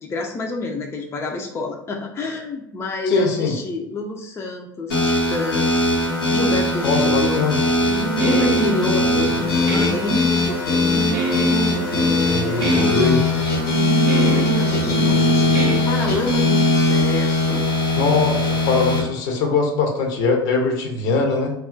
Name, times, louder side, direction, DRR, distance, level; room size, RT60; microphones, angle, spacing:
voice 1, 0.0-5.9 6.3-7.5 8.2-11.2 11.9-13.3 14.1-17.7, left 3 dB, 20° left, 1 dB, 0.4 m, -28 dB
voice 2, 3.1-3.5 6.8-7.6 12.3-13.2 18.0-21.5, left 4 dB, 60° left, 2 dB, 0.7 m, -21 dB
sound 1, 4.9-19.0, left 2 dB, 90° left, 0.9 m, -20 dB
Guitar, 7.8-16.5, right 3 dB, 70° right, 0.6 m, -27 dB
2.3 x 2.0 x 3.8 m, 0.81 s
hypercardioid pair, 80°, 12 cm